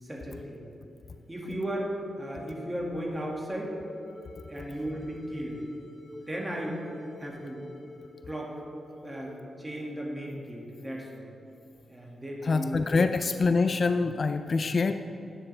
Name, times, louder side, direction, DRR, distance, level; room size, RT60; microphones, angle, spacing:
voice 1, 0.0-0.7 1.3-3.7 4.4-5.6 6.3-6.8 7.2-7.6 8.2-8.6 9.0-11.3 11.9-12.8 13.1-13.2 13.7-13.8 14.5-14.7, equal, 15° right, -2 dB, 1.8 m, -36 dB
sound 1, 1.1-10.3, left 1 dB, 75° left, 1.4 m, -49 dB
voice 2, 12.4-14.9, left 4 dB, 45° left, 9 dB, 0.3 m, -25 dB
11.0 x 9.0 x 3.3 m, 2.8 s
cardioid pair, 90°, 0 cm